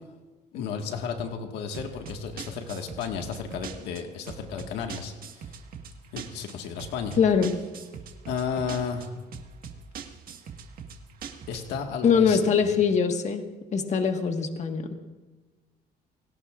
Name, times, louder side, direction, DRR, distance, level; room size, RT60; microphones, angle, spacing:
voice 1, 0.5-5.1 6.1-7.2 8.3-9.1 11.5-12.4, left 6 dB, 90° left, 3 dB, 1.7 m, -33 dB
sound 1, 1.7-11.8, right 6 dB, 60° right, 1.6 m, -42 dB
voice 2, 7.2-7.5 12.0-13.4 13.7-14.9, left 6 dB, 45° left, 4 dB, 1.6 m, -22 dB
29.0 x 17.5 x 2.5 m, 1.2 s
cardioid pair, 110°, 17 cm